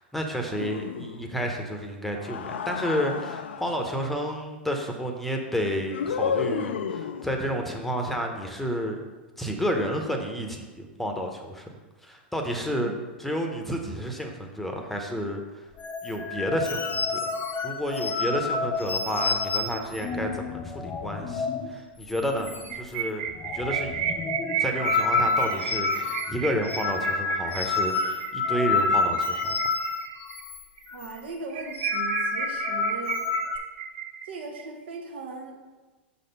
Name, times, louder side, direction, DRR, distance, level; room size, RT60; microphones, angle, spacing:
voice 1, 0.0-9.1 9.4-11.6 12.0-12.9 13.2-15.7 16.0-17.2 17.6-23.3 23.5-24.1 24.6-29.5, equal, 5° left, 3 dB, 0.8 m, -31 dB
sound 1, 0.6-1.4 2.1-3.9 5.9-7.4, left 7 dB, 85° left, 0.3 m, -31 dB
sound 2, 15.8-21.7 22.0-22.2 22.4-23.0 23.3-30.6 30.9-31.1 31.6-33.6, left 4 dB, 30° left, 0.6 m, -29 dB
voice 2, 22.4-22.7 30.9-33.3 34.2-35.6, right 3 dB, 80° right, 2 dB, 1.3 m, -39 dB
sound 3, 22.5-30.4 30.8-30.9 31.2-31.3 31.5-34.6, right 9 dB, 60° right, 0.6 m, -33 dB
6.1 x 4.1 x 5.4 m, 1.2 s
hypercardioid pair, 120°, 6 cm